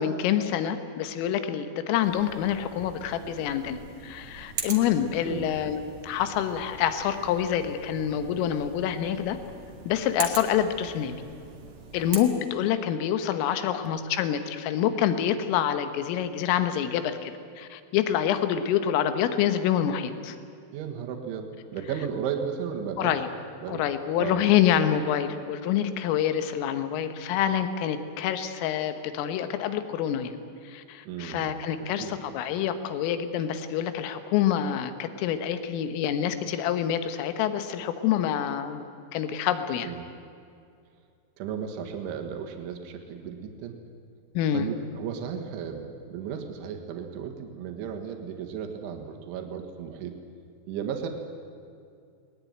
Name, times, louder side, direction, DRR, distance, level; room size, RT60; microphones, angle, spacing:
voice 1, 0.0-9.4 9.9-11.2 11.9-20.4 23.0-23.3 23.7-30.4 30.7-38.8 39.1-39.9 44.4-44.7, left 10 dB, 85° left, 10 dB, 3.8 m, -27 dB
sound 1, 2.0-12.2, right 5 dB, 60° right, 1.4 m, -41 dB
voice 2, 20.7-23.2 23.6-23.8 24.2-24.5 31.1-32.1 39.8-40.0 41.4-43.8 44.5-50.2 50.7-51.1, right 7 dB, 75° right, 4 dB, 4.0 m, -35 dB
20.5 x 19.5 x 9.4 m, 2.4 s
omnidirectional pair, 5.7 m